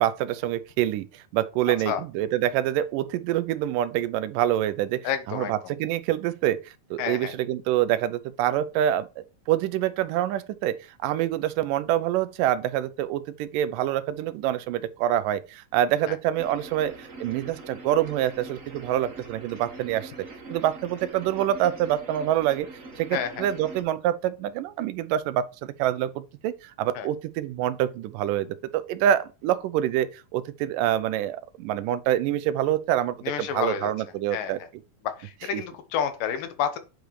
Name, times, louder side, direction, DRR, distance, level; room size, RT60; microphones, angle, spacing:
voice 1, 0.0-20.1 20.5-22.7 23.0-34.6 35.5-35.6, right 12 dB, 85° right, 2.3 m, -26 dB
voice 2, 5.0-5.5 7.0-7.4 16.1-16.2 23.1-23.5 27.0-27.1 33.2-33.9 34.3-34.7 35.0-36.8, left 9 dB, 85° left, 2.7 m, -29 dB
sound 1, 16.3-23.8, right 3 dB, 55° right, 0.8 m, -43 dB
9.1 x 5.1 x 3.1 m
omnidirectional pair, 3.8 m